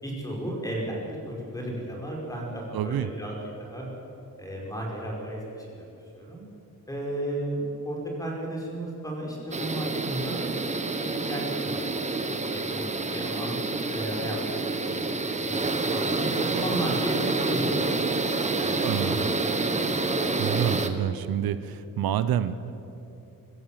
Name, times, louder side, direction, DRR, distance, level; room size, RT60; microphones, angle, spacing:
voice 1, 0.0-3.9 4.4-5.8 6.1-6.4 6.9-10.5 11.0-13.5 13.9-14.4 14.8-18.0 18.3-19.7, right 1 dB, 10° left, -2 dB, 5.2 m, -34 dB
voice 2, 2.7-3.1 18.8-19.3 20.4-22.8, right 10 dB, 85° right, 13 dB, 0.9 m, -28 dB
sound 1, 9.5-20.9, right 3 dB, 20° right, 1.2 m, -28 dB
25.0 x 15.0 x 7.5 m, 2.8 s
wide cardioid pair, 145°, 35 cm